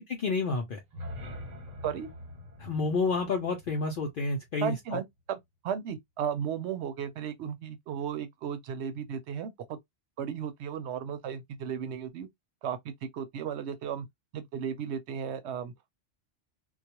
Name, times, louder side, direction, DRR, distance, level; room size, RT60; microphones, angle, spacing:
voice 1, 0.1-0.8 2.6-5.0, left 3 dB, 60° left, 0.6 m, -30 dB
sound 1, 0.8-4.8, left 1 dB, 40° right, 0.8 m, -45 dB
voice 2, 4.6-5.4 5.6-9.8 10.2-12.3 12.6-14.1 14.3-15.7, right 8 dB, 75° right, 0.8 m, -35 dB
2.3 x 2.1 x 2.8 m
omnidirectional pair, 1.2 m